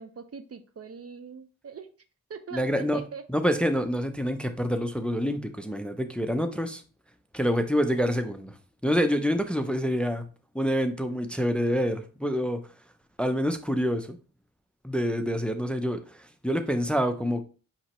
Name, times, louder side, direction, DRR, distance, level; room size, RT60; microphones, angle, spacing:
voice 1, 0.0-1.9 2.3-3.2, right 6 dB, 45° right, 9 dB, 0.5 m, -42 dB
voice 2, 2.5-3.0 3.3-6.8 7.3-8.5 8.8-10.2 10.5-12.6 13.2-14.2 14.8-17.4, equal, 5° left, 7 dB, 0.5 m, -27 dB
5.4 x 3.0 x 2.9 m, 0.36 s
cardioid pair, 70°, 34 cm